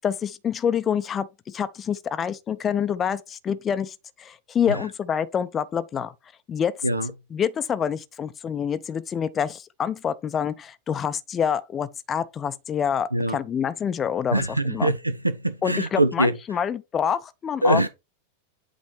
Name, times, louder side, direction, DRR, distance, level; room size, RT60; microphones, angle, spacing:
voice 1, 0.0-6.1 6.5-6.8 7.3-14.9 15.6-17.8, left 8 dB, 25° left, 0.5 m, -27 dB
voice 2, 14.3-16.4 17.6-17.9, right 1 dB, 85° right, 0.4 m, -23 dB
8.3 x 3.0 x 4.4 m
figure-of-eight pair, 90°, 0 cm